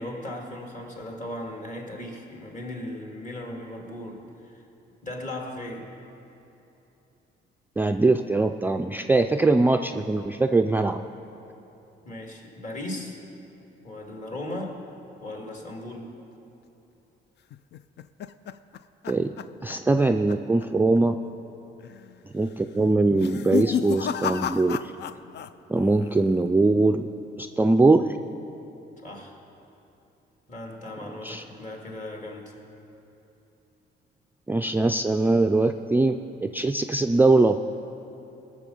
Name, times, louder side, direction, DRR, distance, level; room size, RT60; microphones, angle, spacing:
voice 1, 0.0-4.6 5.0-6.0 12.0-13.2 13.8-14.8 15.2-16.1 21.6-21.7 29.0-29.4 30.5-32.5, left 1 dB, 40° left, 1 dB, 2.1 m, -37 dB
voice 2, 7.8-11.0 19.1-19.3 19.6-21.2 22.3-24.9 25.7-27.0 27.4-28.2 31.2-31.4 34.5-37.7, right 2 dB, 10° right, 5 dB, 0.3 m, -22 dB
sound 1, 17.5-20.0 20.3-20.6 21.0-21.1 21.8-22.2 23.1-25.5 25.8-26.4, left 8 dB, 60° left, 0.4 m, -31 dB
18.5 x 6.7 x 5.4 m, 2.9 s
cardioid pair, 90°, 20 cm